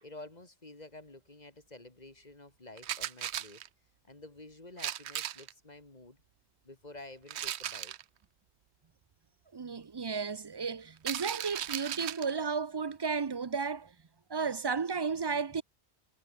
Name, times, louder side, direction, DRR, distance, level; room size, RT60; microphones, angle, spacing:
voice 1, 0.0-3.6 4.1-6.2 6.6-7.9, left 2 dB, 40° left, 2.6 m, -50 dB
sound 1, 2.8-3.7 4.8-5.5 7.3-8.0 11.0-12.3, right 11 dB, 75° right, 0.9 m, -37 dB
voice 2, 9.5-13.9 14.3-15.6, right 5 dB, 35° right, 0.4 m, -33 dB
omnidirectional pair, 1.1 m